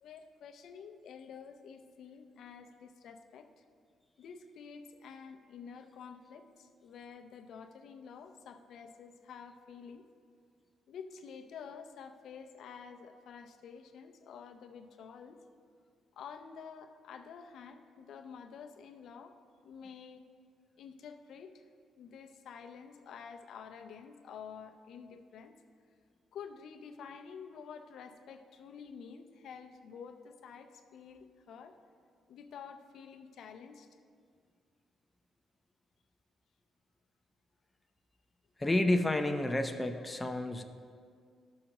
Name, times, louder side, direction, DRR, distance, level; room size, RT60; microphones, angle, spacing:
voice 1, 0.0-3.5 4.2-10.1 10.9-15.4 16.2-19.4 19.6-20.2 20.8-21.7 22.0-25.5 26.3-31.8 32.3-33.9, left 6 dB, 70° left, 6 dB, 0.6 m, -49 dB
voice 2, 38.6-40.6, left 1 dB, 15° left, 6 dB, 0.6 m, -30 dB
13.0 x 6.4 x 2.9 m, 2.1 s
cardioid pair, 90°, 0 cm